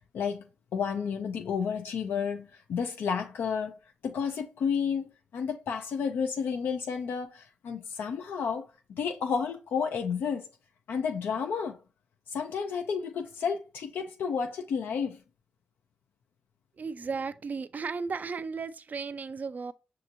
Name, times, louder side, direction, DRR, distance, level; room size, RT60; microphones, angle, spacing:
voice 1, 0.7-3.8 4.0-8.7 9.0-10.5 10.9-11.8 12.3-15.2, left 6 dB, 80° left, 0.4 m, -31 dB
voice 2, 16.8-19.7, right 5 dB, 50° right, 0.4 m, -35 dB
5.8 x 2.8 x 2.5 m
supercardioid pair, 45°, 4 cm